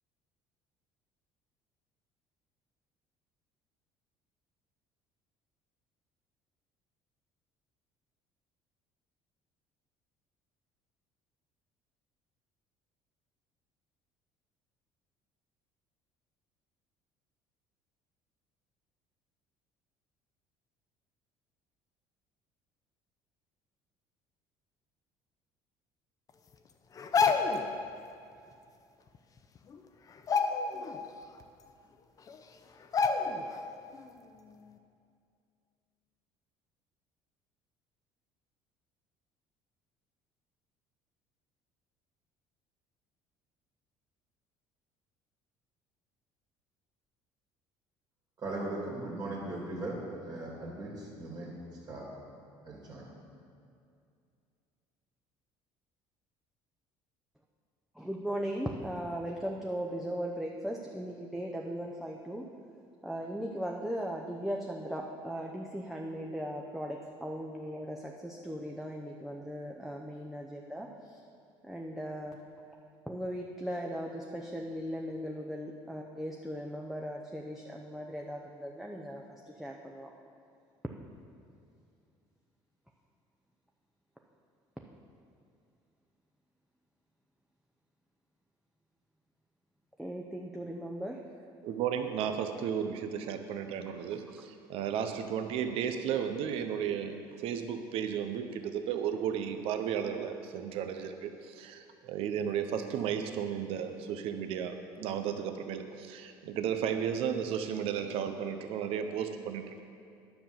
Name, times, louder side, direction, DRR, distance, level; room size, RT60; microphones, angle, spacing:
sound 1, 27.0-27.7 29.1-29.2 29.6-29.8 30.2-31.0 31.4-31.5 32.3-32.4 32.9-33.6 33.9-34.1, left 5 dB, 35° left, 0.7 m, -28 dB
voice 1, 48.4-51.6 51.9-52.1 52.6-53.1, right 2 dB, 40° right, -3 dB, 2.4 m, -38 dB
voice 2, 57.9-62.5 63.0-71.2 71.6-72.4 73.1-80.1 90.0-91.2, equal, ahead, -1 dB, 0.7 m, -38 dB
voice 3, 91.6-109.8, right 8 dB, 70° right, 7 dB, 0.7 m, -34 dB
10.0 x 5.8 x 6.9 m, 2.4 s
cardioid pair, 110°, 10 cm